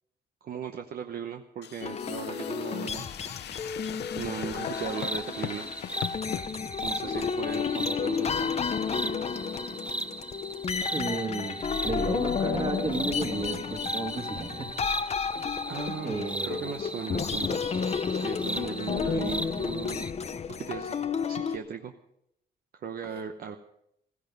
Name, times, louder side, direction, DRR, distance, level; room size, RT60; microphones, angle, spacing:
voice 1, 0.4-3.1 3.5-3.8 4.1-5.7 6.8-8.5 15.7-16.2 16.4-20.1 20.6-21.0 21.3-21.9 22.7-23.6, right 7 dB, 55° right, 5 dB, 0.9 m, -37 dB
sound 1, 1.6-6.5, left 11 dB, 70° left, 0.7 m, -40 dB
sound 2, 1.8-21.6, left 6 dB, 35° left, 0.7 m, -32 dB
sound 3, 4.7-20.1, right 1 dB, 5° right, 0.5 m, -38 dB
voice 2, 10.9-14.7 16.0-16.7, right 3 dB, 30° right, 2 dB, 2.3 m, -33 dB
16.0 x 15.0 x 5.2 m, 0.76 s
cardioid pair, 115°, 18 cm